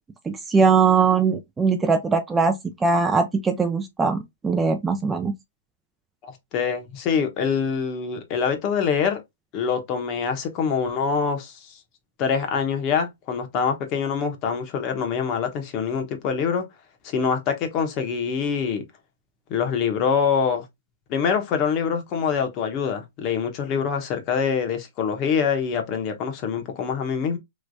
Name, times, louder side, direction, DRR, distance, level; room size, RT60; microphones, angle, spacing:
voice 1, 0.3-5.3, right 5 dB, 10° right, 0.4 m, -21 dB
voice 2, 6.2-9.2 9.5-11.8 12.2-16.7 17.0-18.8 19.5-20.6 21.1-27.4, left 6 dB, 35° left, 1.0 m, -25 dB
3.2 x 2.9 x 2.6 m
hypercardioid pair, 135°, 0 cm